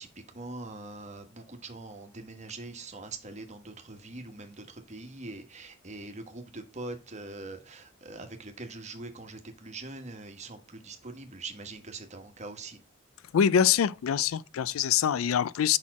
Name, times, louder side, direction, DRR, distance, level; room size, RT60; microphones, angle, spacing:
voice 1, 0.0-12.8, right 2 dB, 35° right, 1.2 m, -43 dB
voice 2, 13.3-15.8, left 8 dB, 90° left, 0.4 m, -24 dB
5.6 x 4.3 x 4.7 m
head